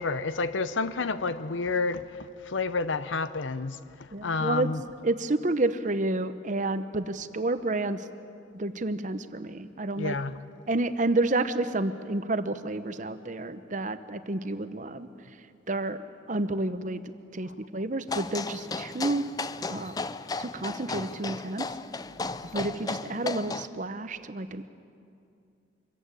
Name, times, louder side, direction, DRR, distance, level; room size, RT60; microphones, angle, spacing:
voice 1, 0.0-2.0 2.5-3.8 4.2-4.8 10.0-10.3, left 4 dB, 75° left, 13 dB, 0.7 m, -29 dB
voice 2, 4.1-4.7 5.0-8.1 8.5-10.2 10.7-15.1 15.7-16.0 16.3-19.2 19.7-19.9 20.4-21.7 22.5-24.7, right 2 dB, 40° right, 11 dB, 0.8 m, -30 dB
clatter of hooves, 18.1-23.7, left 3 dB, 20° left, 0.4 m, -35 dB
25.0 x 15.0 x 8.9 m, 2.5 s
head